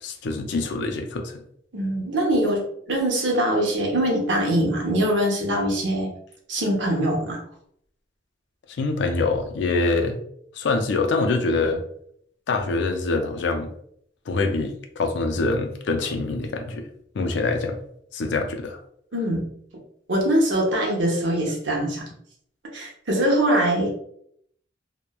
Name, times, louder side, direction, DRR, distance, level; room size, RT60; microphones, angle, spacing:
voice 1, 0.0-1.4 8.7-10.2 10.5-11.8 12.5-13.7 14.3-16.9 17.1-17.8 18.1-18.8, left 3 dB, 70° left, 5 dB, 0.4 m, -25 dB
voice 2, 1.7-6.1 6.5-7.4 19.1-19.5 20.1-22.0 22.7-24.0, right 1 dB, 80° right, -1 dB, 0.7 m, -23 dB
2.9 x 2.1 x 2.2 m, 0.67 s
head